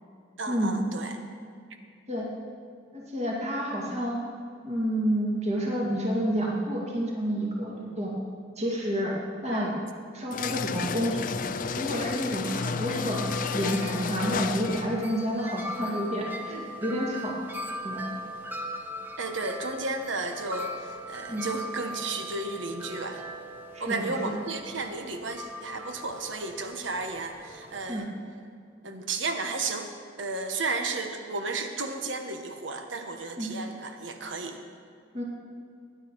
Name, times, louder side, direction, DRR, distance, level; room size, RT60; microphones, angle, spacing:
voice 1, 0.4-1.2 9.5-9.7 12.9-13.2 19.2-23.2 23.8-28.1 28.8-29.9 30.2-34.6, right 3 dB, 85° right, 5 dB, 1.2 m, -33 dB
voice 2, 2.9-4.2 4.6-8.1 8.6-9.2 9.4-9.7 10.1-11.5 11.8-13.2 13.5-17.4 17.8-18.0 21.3-21.5 23.7-24.4 27.9-28.1 33.4-33.5 35.1-35.2, equal, 35° right, -3 dB, 2.2 m, -29 dB
sound 1, 10.3-15.1, left 5 dB, 45° left, 0.5 m, -32 dB
Wind chime, 11.5-27.9, equal, 10° right, 0.9 m, -40 dB
19.5 x 10.5 x 4.6 m, 2.3 s
head